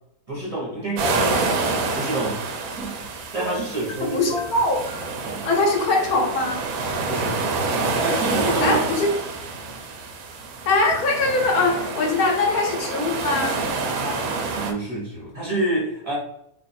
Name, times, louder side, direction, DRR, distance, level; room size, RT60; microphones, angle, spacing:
voice 1, 0.3-1.6 1.9-2.4 2.7-3.1 3.3-4.2 5.2-5.4 7.1-7.4 7.9-8.8 13.9-16.2, right 2 dB, 25° right, -6 dB, 0.9 m, -28 dB
sound 1, 1.0-1.3 3.4-4.0 4.3-5.1, left 4 dB, 50° left, 1.1 m, -32 dB
sound 2, 1.0-14.7, right 3 dB, 75° right, 1.0 m, -27 dB
voice 2, 4.0-4.8 5.4-6.6 8.6-9.1 10.7-13.6, left 3 dB, 75° left, 1 dB, 1.3 m, -22 dB
2.7 x 2.5 x 4.1 m, 0.76 s
omnidirectional pair, 1.6 m